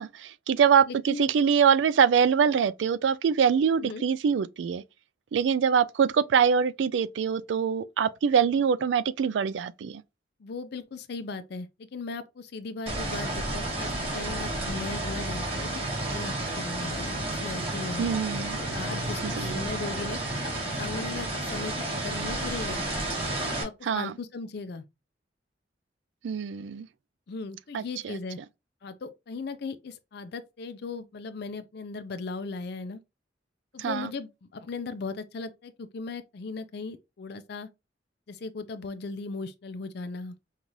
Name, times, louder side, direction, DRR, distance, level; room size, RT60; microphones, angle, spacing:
voice 1, 0.0-4.8 5.3-10.0 18.0-18.6 19.2-19.6 23.8-24.1 26.2-26.9 27.7-28.2 33.8-34.1, right 7 dB, 85° right, 0.3 m, -24 dB
voice 2, 0.9-1.3 3.8-4.0 10.4-15.8 16.1-18.1 18.6-20.2 20.8-22.8 23.6-24.8 27.3-28.4 28.8-33.0 33.7-37.7 38.3-40.4, left 4 dB, 65° left, 0.5 m, -37 dB
sound 1, 12.9-23.6, right 1 dB, 30° right, 2.0 m, -31 dB
5.4 x 2.4 x 3.0 m
head